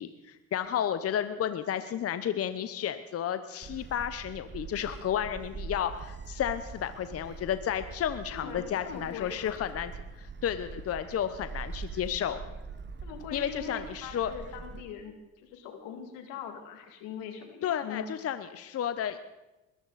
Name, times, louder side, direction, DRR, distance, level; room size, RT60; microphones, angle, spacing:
voice 1, 0.0-9.9 10.2-12.4 13.3-14.3 17.6-19.2, left 9 dB, 45° left, 11 dB, 0.9 m, -32 dB
Gull seagull, 3.6-14.8, right 4 dB, 35° right, 1.3 m, -43 dB
voice 2, 8.3-9.6 13.0-15.1 15.4-18.1, left 6 dB, 85° left, 5 dB, 2.3 m, -42 dB
21.5 x 13.5 x 4.1 m, 1.0 s
supercardioid pair, 80°, 32 cm